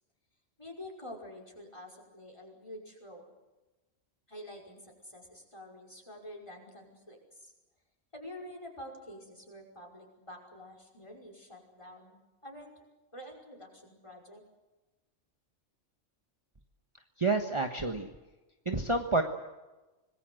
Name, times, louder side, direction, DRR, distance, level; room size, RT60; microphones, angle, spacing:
voice 1, 0.6-3.3 4.3-7.5 8.1-12.2 12.4-12.7 13.1-14.4, left 1 dB, 25° left, 2 dB, 5.5 m, -48 dB
voice 2, 17.2-18.1 18.6-19.2, right 3 dB, 25° right, 4 dB, 1.4 m, -28 dB
26.0 x 20.5 x 7.8 m, 1.1 s
omnidirectional pair, 1.3 m